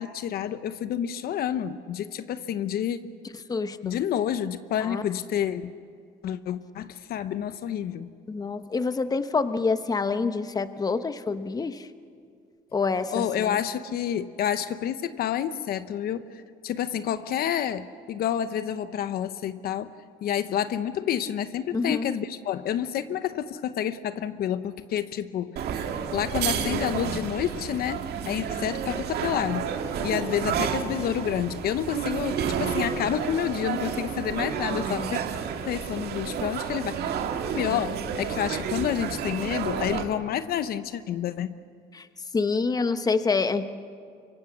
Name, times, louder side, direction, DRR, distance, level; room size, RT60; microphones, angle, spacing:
voice 1, 0.0-3.0 3.8-5.7 6.2-8.1 13.1-19.9 20.2-25.6 26.1-29.7 30.0-35.2 35.6-37.1 37.5-41.6, left 10 dB, 65° left, 12 dB, 0.9 m, -29 dB
voice 2, 3.5-4.0 4.8-5.0 8.3-11.8 12.7-13.1 13.4-13.6 21.7-22.1 41.9-42.0 42.3-43.6, left 4 dB, 20° left, 10 dB, 1.0 m, -26 dB
sound 1, 25.6-40.0, right 7 dB, 70° right, 2.0 m, -30 dB
25.0 x 23.5 x 7.2 m, 2.2 s
cardioid pair, 110°, 17 cm